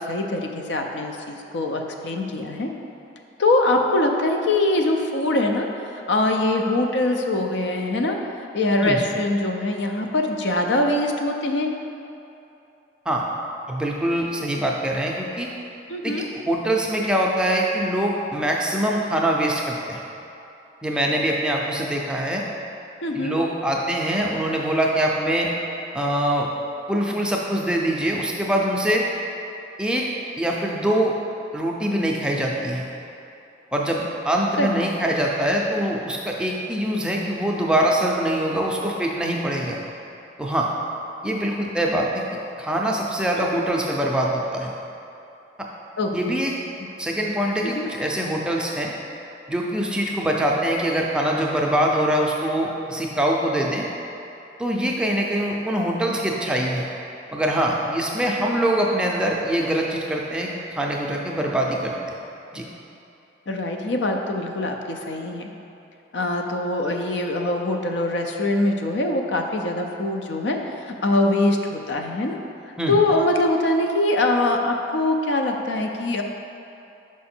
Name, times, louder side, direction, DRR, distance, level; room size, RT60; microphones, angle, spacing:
voice 1, 0.0-2.7 3.4-5.7 5.9-8.2 8.5-11.7 15.9-16.3 23.0-23.4 34.6-34.8 43.3-43.7 46.0-46.4 47.7-47.9 63.5-65.5 66.1-72.4 72.9-76.2, left 2 dB, 70° left, 3 dB, 0.5 m, -23 dB
voice 2, 13.7-15.5 16.0-16.1 16.5-20.0 20.8-22.4 23.1-25.5 25.9-26.5 26.9-29.0 29.8-30.0 30.4-31.1 31.5-32.8 33.7-39.8 40.4-40.7 41.2-42.2 42.6-44.7 46.1-46.5 47.0-48.9 49.5-53.9 54.6-56.9 57.3-62.2 62.5-62.6 72.8-72.9, right 1 dB, 5° right, -2 dB, 0.4 m, -23 dB
6.0 x 4.7 x 4.3 m, 2.8 s
head